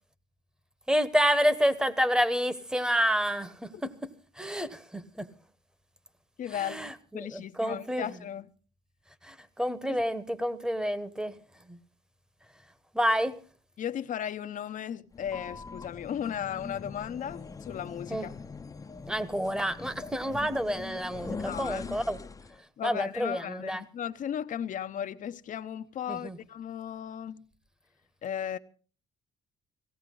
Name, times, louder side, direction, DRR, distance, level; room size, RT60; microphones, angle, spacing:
voice 1, 0.9-3.9 4.4-5.3 6.6-8.1 9.2-11.4 11.7-11.8 12.9-13.3 18.1-18.3 19.1-22.2 22.8-23.8 26.1-26.4, equal, 5° right, 1.2 m, -29 dB
voice 2, 6.4-8.5 9.9-10.0 13.8-18.3 21.4-22.0 22.8-27.4 28.2-28.6, left 9 dB, 50° left, 0.9 m, -36 dB
sound 1, 15.1-22.6, left 4 dB, 20° left, 0.8 m, -42 dB
17.5 x 16.5 x 3.8 m
cardioid pair, 110°, 17 cm